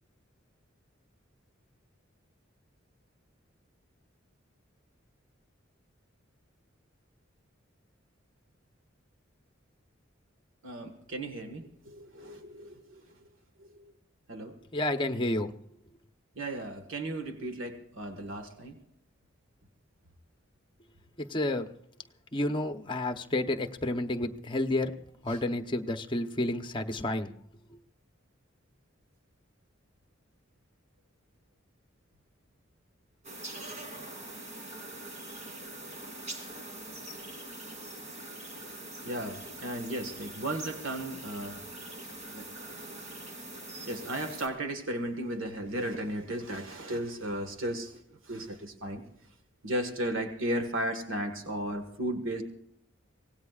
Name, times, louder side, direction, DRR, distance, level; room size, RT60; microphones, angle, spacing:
voice 1, 10.6-12.8 14.3-14.5 16.4-18.7 25.3-25.4 33.4-33.6 39.0-41.6 42.3-42.4 43.9-47.9 48.3-49.0 49.6-52.4, right 1 dB, 85° right, 5 dB, 1.7 m, -35 dB
voice 2, 14.7-15.5 21.2-21.6 22.3-24.9 25.2-27.3, left 1 dB, 25° left, 7 dB, 0.9 m, -30 dB
sound 1, 33.2-44.5, right 2 dB, 35° right, 2.7 m, -43 dB
25.0 x 18.0 x 2.5 m, 0.71 s
head